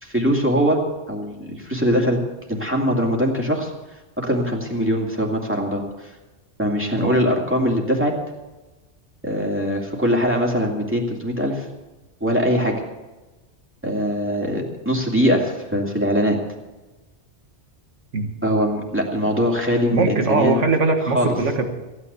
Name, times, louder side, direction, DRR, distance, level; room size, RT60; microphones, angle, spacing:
voice 1, 0.0-0.8 1.1-2.2 2.5-3.7 4.2-6.1 6.6-8.1 9.2-11.7 12.2-12.8 13.8-16.4 18.4-20.5 21.1-21.3, equal, 10° right, 0 dB, 2.4 m, -22 dB
voice 2, 19.9-21.7, right 3 dB, 85° right, 5 dB, 1.9 m, -20 dB
15.5 x 9.6 x 6.9 m, 1.1 s
omnidirectional pair, 1.2 m